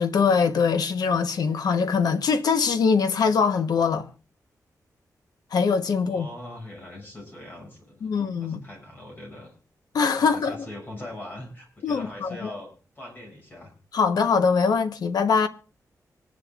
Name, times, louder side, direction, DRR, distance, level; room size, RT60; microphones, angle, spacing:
voice 1, 0.0-4.1 5.5-6.3 8.0-8.6 9.9-10.6 11.8-12.5 13.9-15.5, left 5 dB, 80° left, 1.0 m, -22 dB
voice 2, 6.0-9.5 10.2-13.7, left 1 dB, 30° left, 6.6 m, -41 dB
26.0 x 10.5 x 2.4 m
wide cardioid pair, 165°, 7 cm